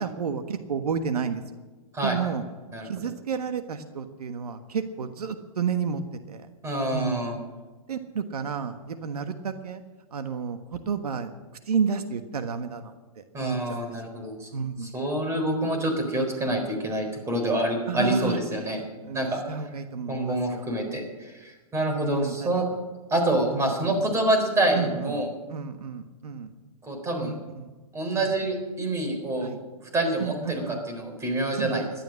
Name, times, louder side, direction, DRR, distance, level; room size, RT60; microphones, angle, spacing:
voice 1, 0.0-1.4 2.0-2.4 2.8-6.0 6.3-6.5 6.9-7.3 7.9-9.8 10.1-11.3 11.7-13.8 14.5-14.9 17.9-18.4 19.0-20.7 22.0-22.6 23.5-24.0 24.7-25.2 25.5-26.5 27.2-27.7 28.2-28.3 29.4-29.6 30.2-30.8 31.6-31.9, right 6 dB, 85° right, 8 dB, 1.4 m, -31 dB
voice 2, 1.9-2.3 2.7-2.9 6.6-7.4 13.3-14.5 14.8-18.8 19.1-19.4 20.1-22.7 23.1-25.3 26.8-27.3 27.9-29.5 29.9-31.8, right 1 dB, 15° right, 4 dB, 4.0 m, -27 dB
17.0 x 12.5 x 6.4 m, 1.2 s
hypercardioid pair, 135°, 19 cm